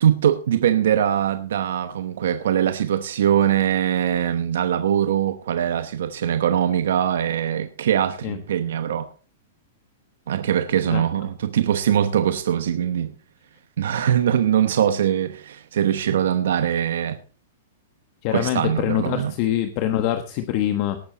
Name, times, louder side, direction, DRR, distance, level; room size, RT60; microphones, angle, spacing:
voice 1, 0.0-9.1 10.3-13.2 13.8-17.2 18.3-19.3, right 9 dB, 75° right, 0.9 m, -22 dB
voice 2, 18.2-21.0, left 12 dB, 40° left, 1.3 m, -24 dB
18.5 x 8.4 x 4.1 m
hypercardioid pair, 155°, 0 cm